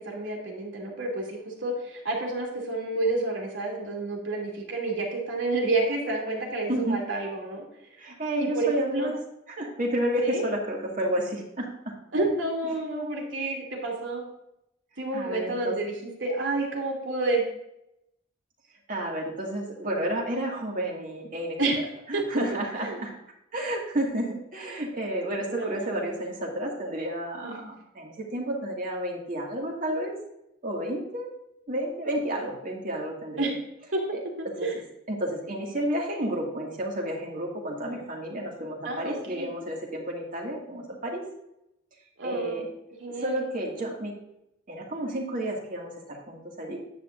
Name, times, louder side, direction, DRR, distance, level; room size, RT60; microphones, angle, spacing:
voice 1, 0.0-7.7 8.4-9.1 10.2-10.4 12.1-14.3 15.0-15.9 16.2-17.5 21.6-21.8 22.1-22.2 22.8-23.0 25.4-26.0 27.4-27.7 33.4-33.5 33.9-34.0 34.4-34.7 38.8-39.5 42.2-42.6 43.0-43.4, right 2 dB, 75° right, -1 dB, 2.8 m, -29 dB
voice 2, 8.0-9.1 9.6-11.9 15.1-15.7 18.9-21.6 22.1-23.1 23.5-30.2 30.6-31.3 31.7-33.5 34.1-34.2 34.6-34.7 35.1-41.2 42.2-42.7 43.2-44.1 44.7-46.8, right 1 dB, 45° right, -1 dB, 2.1 m, -31 dB
9.8 x 8.5 x 2.6 m, 0.83 s
head